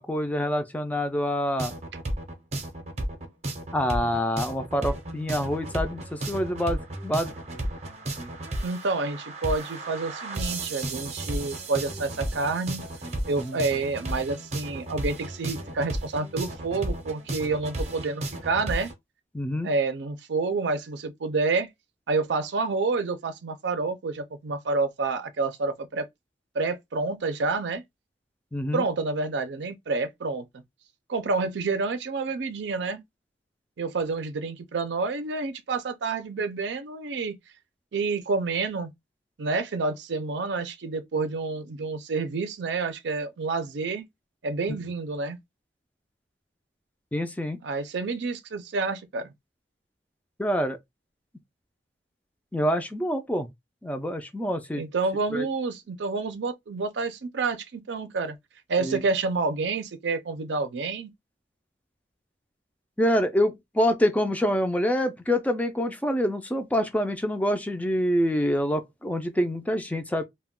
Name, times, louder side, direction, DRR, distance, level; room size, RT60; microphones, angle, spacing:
voice 1, 0.0-1.7 3.7-7.3 13.3-13.6 19.3-19.7 28.5-28.8 47.1-47.6 50.4-50.8 52.5-53.5 53.8-54.8 55.3-55.5 58.8-59.0 63.0-70.2, equal, 10° left, 0.3 m, -26 dB
sound 1, 1.6-18.9, right 1 dB, 40° right, 0.6 m, -33 dB
voice 2, 8.6-12.9 13.3-18.9 19.6-21.7 22.1-26.1 26.5-27.8 28.7-30.5 31.1-33.0 33.8-37.4 37.9-38.9 39.4-44.1 44.4-45.4 47.6-49.3 54.7-58.4 58.7-61.1, right 3 dB, 85° right, 0.5 m, -28 dB
2.3 x 2.1 x 3.5 m
head